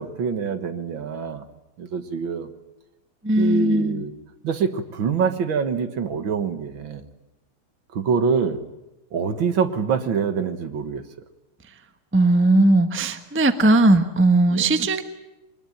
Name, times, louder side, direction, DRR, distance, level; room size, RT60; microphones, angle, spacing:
voice 1, 0.0-1.4 1.8-2.5 3.4-4.1 4.4-7.1 7.9-8.6 9.1-11.0 14.5-14.7, right 6 dB, 65° right, 9 dB, 2.1 m, -25 dB
voice 2, 3.2-4.0 12.1-15.0, right 2 dB, 10° right, 8 dB, 0.8 m, -18 dB
23.0 x 21.0 x 8.9 m, 1.0 s
omnidirectional pair, 2.4 m